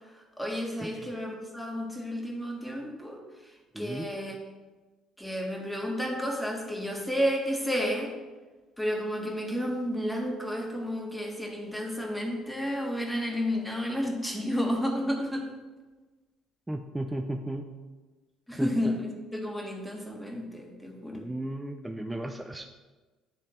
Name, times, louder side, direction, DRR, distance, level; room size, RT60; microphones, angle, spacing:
voice 1, 0.1-4.4 5.2-8.1 8.8-15.5 18.5-21.3, equal, 5° left, 1 dB, 1.7 m, -31 dB
voice 2, 0.8-1.1 3.7-4.1 16.7-17.7 18.6-18.7 21.1-22.7, right 1 dB, 10° right, 4 dB, 0.5 m, -35 dB
10.0 x 3.5 x 4.4 m, 1.2 s
hypercardioid pair, 60°, 0 cm